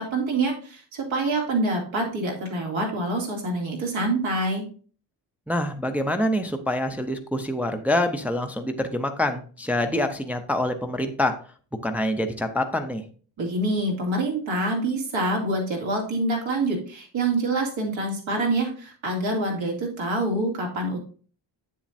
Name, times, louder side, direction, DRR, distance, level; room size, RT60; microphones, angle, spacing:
voice 1, 0.1-4.6 13.4-21.0, right 2 dB, 85° right, 0 dB, 2.5 m, -26 dB
voice 2, 5.5-11.3 11.8-13.0, left 1 dB, 5° right, 6 dB, 0.4 m, -26 dB
8.2 x 7.2 x 2.6 m, 0.41 s
wide cardioid pair, 170°, 45 cm